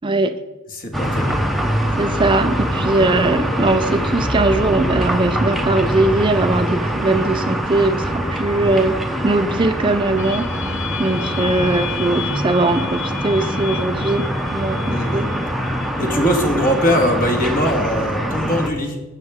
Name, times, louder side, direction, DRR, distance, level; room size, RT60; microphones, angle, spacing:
voice 1, 0.0-0.4 2.0-15.3, right 2 dB, 25° right, 9 dB, 0.4 m, -20 dB
voice 2, 0.7-1.4 14.9-15.3 16.0-19.0, equal, 40° left, 3 dB, 1.8 m, -21 dB
sound 1, 0.9-18.7, equal, ahead, 0.8 m, -23 dB
sound 2, 10.2-17.7, left 11 dB, 60° left, 0.7 m, -34 dB
12.5 x 9.0 x 3.7 m, 1.2 s
head